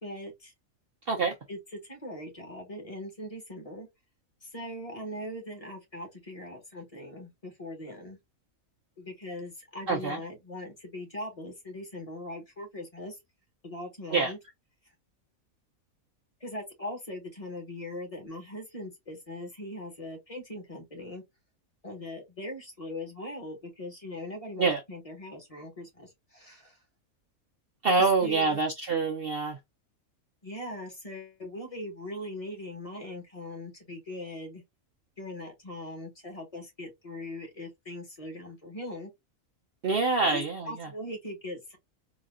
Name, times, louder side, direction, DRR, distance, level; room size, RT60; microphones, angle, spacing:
voice 1, 0.0-0.5 1.5-3.9 4.4-8.2 9.0-13.2 13.6-14.4 16.4-21.2 21.8-26.8 28.0-28.6 30.4-34.6 35.2-39.1 40.3-41.8, left 1 dB, 25° left, 1.6 m, -40 dB
voice 2, 9.9-10.2 14.1-14.3 24.6-24.8 27.8-29.6 39.8-40.9, right 4 dB, 55° right, 0.8 m, -26 dB
4.0 x 2.8 x 2.5 m
omnidirectional pair, 1.5 m